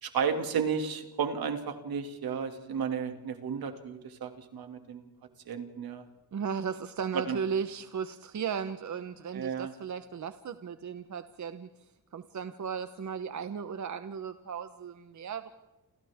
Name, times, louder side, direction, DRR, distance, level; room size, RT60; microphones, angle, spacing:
voice 1, 0.0-5.1 5.5-6.0 7.1-7.4 9.3-9.7, right 6 dB, 75° right, 6 dB, 2.5 m, -33 dB
voice 2, 6.3-11.7 12.1-15.5, right 7 dB, 50° right, 10 dB, 1.1 m, -36 dB
29.5 x 28.5 x 3.7 m, 1.1 s
cardioid pair, 85°, 37 cm